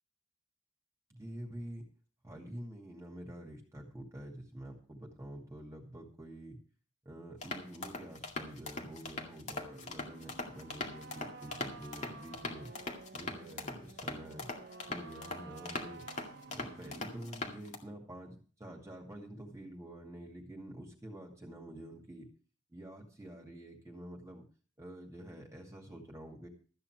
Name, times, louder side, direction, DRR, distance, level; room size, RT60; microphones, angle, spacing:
voice 1, 1.1-1.9 2.2-6.6 7.0-12.7 13.1-14.5 14.9-16.1 16.5-22.3 22.7-24.5 24.8-26.5, right 1 dB, 15° right, 0 dB, 2.4 m, -47 dB
sound 1, 7.4-17.8, left 3 dB, 35° left, 2.0 m, -42 dB
sound 2, 9.6-17.6, right 3 dB, 55° right, 0.9 m, -52 dB
14.0 x 9.0 x 4.8 m, 0.39 s
head